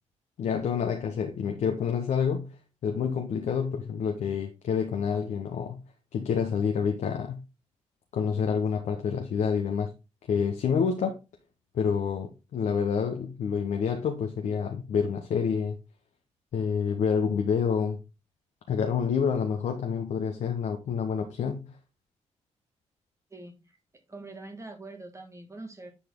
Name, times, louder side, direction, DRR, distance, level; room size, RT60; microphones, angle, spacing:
voice 1, 0.4-2.5 2.8-5.8 6.1-7.4 8.1-9.9 10.3-11.2 11.7-15.8 16.5-18.0 18.7-21.8, left 6 dB, 70° left, 1.1 m, -28 dB
voice 2, 23.3-23.8 24.1-25.9, right 2 dB, 25° right, 1.6 m, -44 dB
10.0 x 4.3 x 3.7 m
cardioid pair, 80°, 13 cm